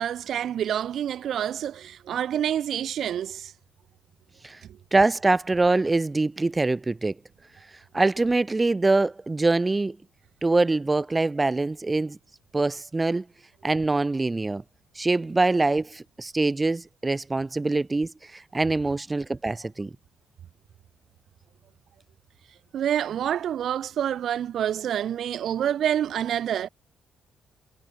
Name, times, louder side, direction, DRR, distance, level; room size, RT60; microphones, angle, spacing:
voice 1, 0.0-3.5 22.7-26.7, right 10 dB, 65° right, 4.0 m, -27 dB
voice 2, 4.9-7.1 7.9-10.0 10.4-12.2 12.5-13.2 13.6-14.6 15.0-19.9, right 3 dB, 20° right, 0.7 m, -24 dB
cardioid pair, 90°, 0 cm